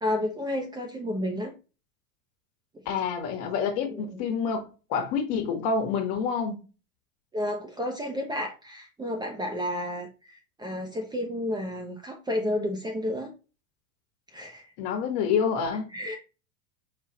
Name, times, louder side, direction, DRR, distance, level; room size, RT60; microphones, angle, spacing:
voice 1, 0.0-1.5 3.9-4.0 7.3-13.3 14.3-14.7 15.9-16.2, left 1 dB, 10° right, 0.6 m, -31 dB
voice 2, 2.8-6.6 14.8-15.9, left 6 dB, 50° left, 1.4 m, -28 dB
5.0 x 2.4 x 4.2 m
hypercardioid pair, 110°, 41 cm